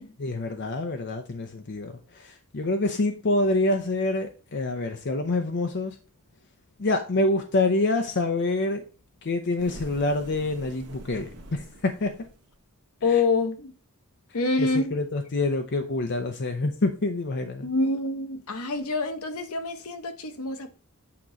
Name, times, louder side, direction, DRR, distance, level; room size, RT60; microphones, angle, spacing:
voice 1, 0.2-6.0 6.8-8.8 9.2-12.1 13.1-13.2 14.6-17.7, left 2 dB, 50° left, 0.7 m, -26 dB
sound 1, 9.6-12.6, right 1 dB, 85° right, 1.2 m, -45 dB
voice 2, 13.0-13.7 14.3-14.9 17.6-20.7, left 3 dB, 75° left, 1.0 m, -26 dB
8.5 x 3.0 x 5.1 m
head